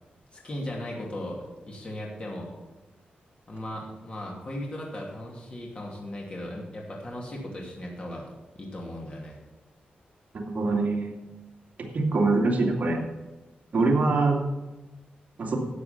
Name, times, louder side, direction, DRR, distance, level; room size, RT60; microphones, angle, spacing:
voice 1, 0.3-2.5 3.5-8.2 8.5-9.4, left 1 dB, 35° left, -2 dB, 2.7 m, -37 dB
voice 2, 10.3-11.1 11.9-13.0 13.7-14.4 15.4-15.6, right 3 dB, 50° right, -2 dB, 2.4 m, -23 dB
12.0 x 8.3 x 5.8 m, 1.1 s
wide cardioid pair, 135°, 3 cm